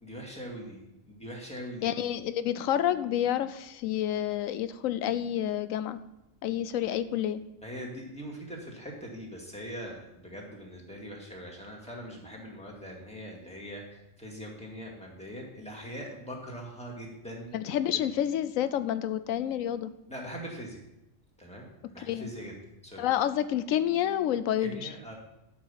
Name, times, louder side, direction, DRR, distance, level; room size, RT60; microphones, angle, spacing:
voice 1, 0.0-1.9 7.6-18.0 20.1-20.8 21.4-22.5 22.8-23.1 24.6-25.1, equal, 5° left, -2 dB, 2.1 m, -42 dB
voice 2, 1.8-6.0 6.4-7.4 17.5-19.9 22.0-22.3 23.0-24.9, left 11 dB, 90° left, 13 dB, 1.0 m, -29 dB
12.0 x 5.6 x 5.6 m, 0.91 s
omnidirectional pair, 1.3 m